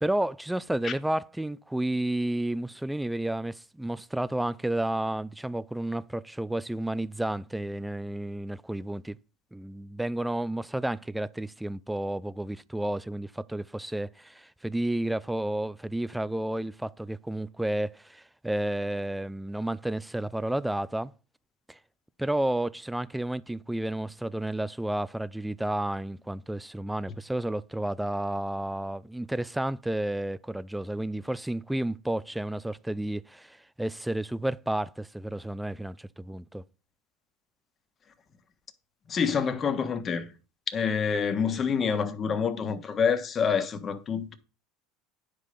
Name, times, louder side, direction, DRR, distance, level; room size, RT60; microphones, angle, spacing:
voice 1, 0.0-9.2 9.5-21.1 21.7-21.8 22.2-36.6, right 1 dB, 5° right, 0.4 m, -31 dB
voice 2, 39.1-40.3 40.7-44.3, left 6 dB, 30° left, 1.3 m, -27 dB
9.9 x 5.3 x 5.5 m
supercardioid pair, 105°, 0 cm